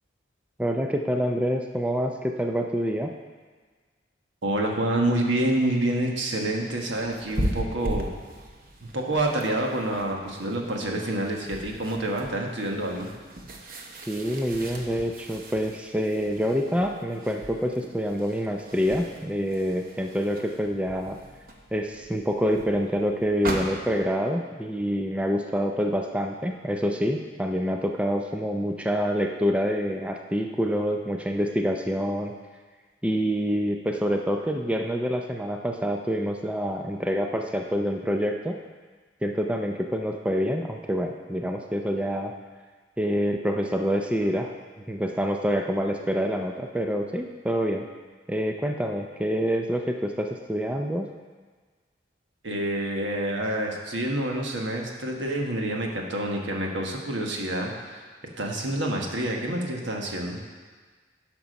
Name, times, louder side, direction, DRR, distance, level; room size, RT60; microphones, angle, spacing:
voice 1, 0.6-3.1 14.1-21.2 21.7-32.3 33.0-38.6 39.2-42.3 43.0-44.5 44.9-47.9 48.3-51.1, equal, 5° right, 3 dB, 0.4 m, -26 dB
voice 2, 4.4-8.1 8.8-13.1 52.4-58.0 58.4-60.4, right 1 dB, 80° right, 0 dB, 1.4 m, -27 dB
sound 1, 6.4-24.1, right 1 dB, 50° right, 0.9 m, -38 dB
11.0 x 5.9 x 5.2 m, 1.5 s
head